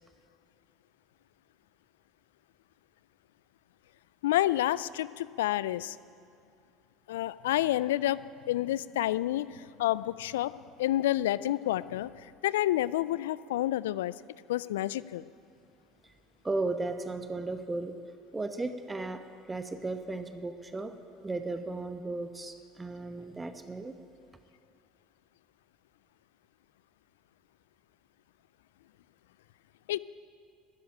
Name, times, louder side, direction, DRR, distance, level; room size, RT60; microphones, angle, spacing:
voice 1, 4.2-6.0 7.1-10.5 10.8-14.1 14.5-15.3 29.9-30.0, left 14 dB, 75° left, 18 dB, 0.3 m, -29 dB
voice 2, 16.4-18.0 18.3-19.2 19.5-20.9 21.2-23.9, right 2 dB, 20° right, 8 dB, 0.9 m, -35 dB
12.5 x 10.0 x 8.8 m, 2.4 s
hypercardioid pair, 65°, 0 cm